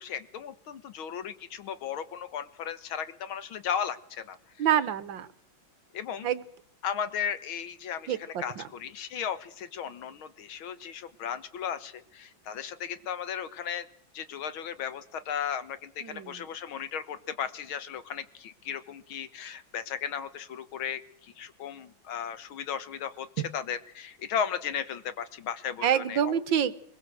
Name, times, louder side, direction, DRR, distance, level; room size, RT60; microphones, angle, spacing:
voice 1, 0.0-4.7 5.9-6.3 6.8-13.9 14.1-23.3 23.5-26.4, left 8 dB, 80° left, 13 dB, 2.1 m, -35 dB
voice 2, 4.6-5.3 6.2-6.4 8.1-8.6 16.0-16.4 23.4-23.5 25.8-26.8, right 9 dB, 70° right, 15 dB, 1.8 m, -27 dB
23.0 x 21.5 x 7.8 m, 0.65 s
omnidirectional pair, 2.2 m